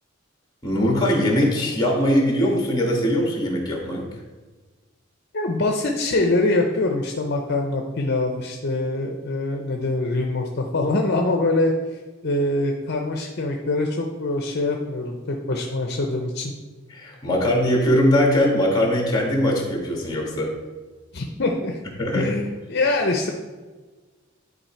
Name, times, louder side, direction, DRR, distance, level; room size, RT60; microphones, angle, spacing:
voice 1, 0.6-4.0 16.9-20.5 22.0-22.3, equal, 20° left, -1 dB, 1.9 m, -21 dB
voice 2, 5.3-11.7 12.2-16.5 21.1-21.8 22.1-23.3, left 2 dB, 55° left, 2 dB, 0.7 m, -24 dB
11.0 x 4.1 x 4.5 m, 1.3 s
head